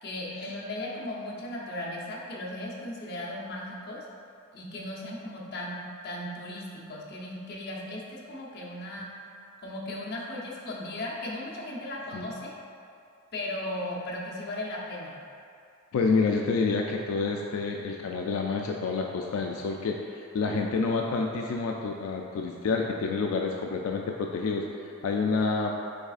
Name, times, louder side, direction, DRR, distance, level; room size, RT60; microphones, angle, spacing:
voice 1, 0.0-4.0 4.5-5.8 6.0-9.1 9.6-12.6 13.3-15.1, left 1 dB, 50° left, -5 dB, 0.7 m, -36 dB
voice 2, 15.9-25.8, left 4 dB, 90° left, 1 dB, 0.3 m, -28 dB
5.2 x 4.0 x 2.4 m, 2.5 s
head